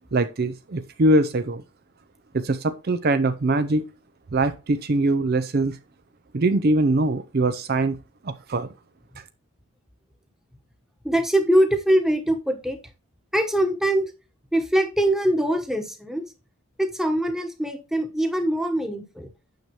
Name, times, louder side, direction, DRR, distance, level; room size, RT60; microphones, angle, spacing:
voice 1, 0.1-1.6 2.3-3.9 4.3-5.8 6.3-8.0 8.2-8.7 9.2-9.3, right 2 dB, 45° right, 0.5 m, -22 dB
voice 2, 11.0-12.8 13.3-14.1 14.5-16.3 16.8-19.3, right 1 dB, ahead, 1.2 m, -22 dB
9.1 x 6.7 x 3.0 m
head